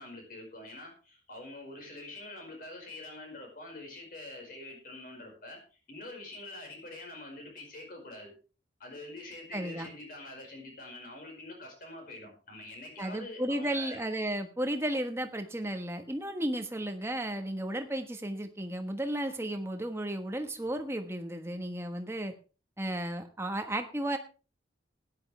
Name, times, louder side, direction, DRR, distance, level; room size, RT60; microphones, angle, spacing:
voice 1, 0.0-8.3 8.8-14.0, left 2 dB, 50° left, 2 dB, 5.1 m, -45 dB
voice 2, 9.5-9.9 13.0-22.3 22.8-24.2, right 1 dB, 15° right, 6 dB, 1.3 m, -34 dB
16.5 x 10.5 x 3.3 m, 0.35 s
head